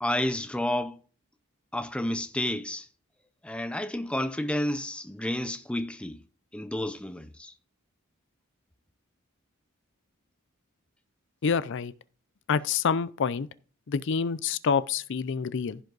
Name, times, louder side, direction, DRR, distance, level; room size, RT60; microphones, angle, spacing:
voice 1, 0.0-1.0 1.7-2.9 3.4-6.2 6.5-7.5, left 1 dB, 5° left, 0.6 m, -30 dB
voice 2, 11.4-11.9 12.5-13.5 13.9-15.8, left 6 dB, 60° left, 0.5 m, -27 dB
15.5 x 5.2 x 3.9 m
head